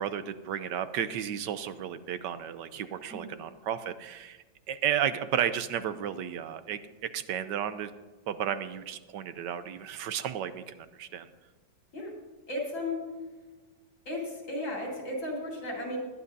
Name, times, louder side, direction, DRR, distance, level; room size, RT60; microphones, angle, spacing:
voice 1, 0.0-4.4 4.7-7.9 8.3-11.3, right 9 dB, 75° right, 12 dB, 1.2 m, -33 dB
voice 2, 12.5-13.0 14.1-16.0, left 1 dB, 80° left, -2 dB, 4.8 m, -34 dB
19.5 x 12.0 x 2.7 m, 1.3 s
omnidirectional pair, 2.1 m